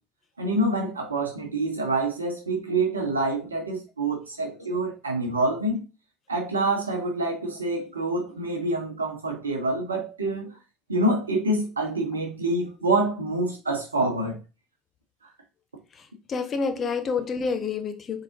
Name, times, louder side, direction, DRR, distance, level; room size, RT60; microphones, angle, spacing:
voice 1, 0.4-5.8 6.3-10.5 10.9-14.4, right 2 dB, 85° right, 1.0 m, -26 dB
voice 2, 15.9-18.2, left 5 dB, 35° left, 0.7 m, -29 dB
3.9 x 3.8 x 2.8 m
figure-of-eight pair, 65°, 0 cm